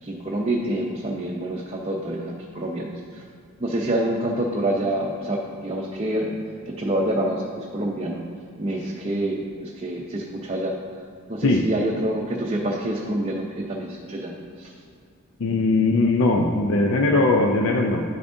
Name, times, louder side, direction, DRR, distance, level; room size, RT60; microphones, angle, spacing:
voice 1, 0.0-3.2 3.6-6.3 6.7-8.2 8.6-10.8 11.3-14.7, right 1 dB, 25° right, -2 dB, 0.6 m, -27 dB
voice 2, 15.4-18.0, left 2 dB, 65° left, 3 dB, 0.5 m, -20 dB
10.5 x 7.0 x 2.6 m, 2.2 s
head